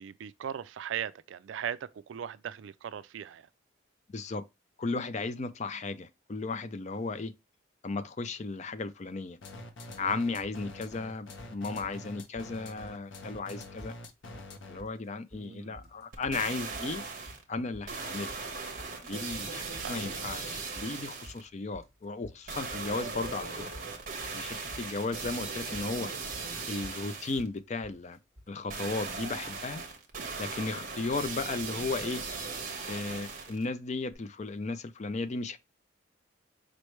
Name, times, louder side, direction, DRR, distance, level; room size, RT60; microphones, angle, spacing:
voice 1, 0.0-3.5 15.3-15.9 19.8-20.1, right 9 dB, 65° right, 0.3 m, -39 dB
voice 2, 4.1-4.4 4.8-7.3 7.8-9.4 10.0-13.9 14.7-17.0 17.5-18.3 19.0-23.5 24.3-26.1 26.7-28.2 28.5-29.8 30.4-32.2 32.9-35.6, left 3 dB, 35° left, 0.4 m, -35 dB
sound 1, 9.4-15.0, left 2 dB, 65° left, 0.8 m, -45 dB
sound 2, 10.4-10.6 10.9-11.5 11.8-12.5 12.8-13.1 13.3-13.5 13.8-14.5 14.8-15.5 15.7-28.6, equal, ahead, 1.9 m, -51 dB
sound 3, 16.1-17.4 17.9-21.4 22.5-27.5 28.7-33.7 34.1-34.2, right 4 dB, 45° right, 1.3 m, -38 dB
5.1 x 3.2 x 3.1 m
head